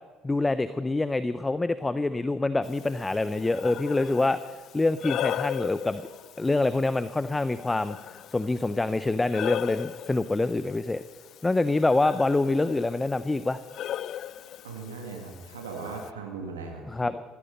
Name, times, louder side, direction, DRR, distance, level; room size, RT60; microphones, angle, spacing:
voice 1, 0.2-4.4 4.7-6.0 6.4-8.0 8.3-11.0 11.4-13.6 16.9-17.2, left 2 dB, 20° left, 14 dB, 0.6 m, -26 dB
Breathing, 2.6-16.1, left 11 dB, 60° left, 0.4 m, -38 dB
voice 2, 14.6-17.1, right 4 dB, 90° right, 1 dB, 1.7 m, -38 dB
16.5 x 15.0 x 5.4 m, 1.5 s
hypercardioid pair, 60°, 0 cm